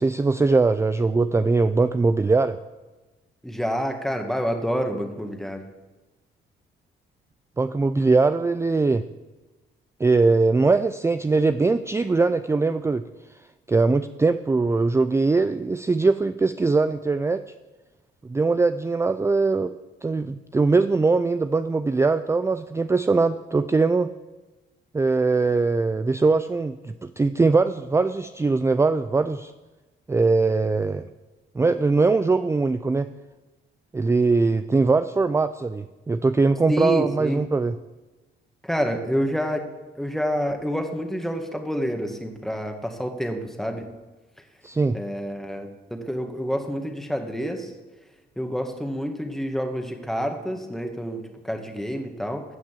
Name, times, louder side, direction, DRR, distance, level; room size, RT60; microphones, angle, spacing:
voice 1, 0.0-2.6 7.6-9.0 10.0-13.0 13.7-17.4 18.3-19.7 20.0-24.1 24.9-29.5 30.1-31.0 31.5-33.1 33.9-37.7 44.6-45.0, right 3 dB, 15° right, 11 dB, 0.4 m, -21 dB
voice 2, 3.4-5.6 36.7-37.4 38.6-39.6 40.0-43.9 44.9-47.7 48.4-52.4, equal, ahead, 4 dB, 1.8 m, -28 dB
15.0 x 5.9 x 7.6 m, 1.1 s
cardioid pair, 90°, 20 cm